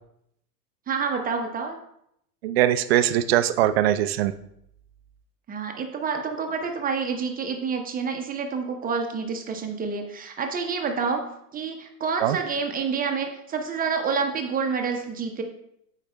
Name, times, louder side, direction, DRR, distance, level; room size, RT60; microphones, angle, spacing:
voice 1, 0.9-1.8 5.5-11.2 11.5-15.4, right 5 dB, 15° right, 4 dB, 0.8 m, -28 dB
voice 2, 2.4-4.3 12.2-12.4, right 12 dB, 40° right, 11 dB, 0.4 m, -21 dB
14.5 x 4.9 x 2.3 m, 0.75 s
figure-of-eight pair, 95°, 49 cm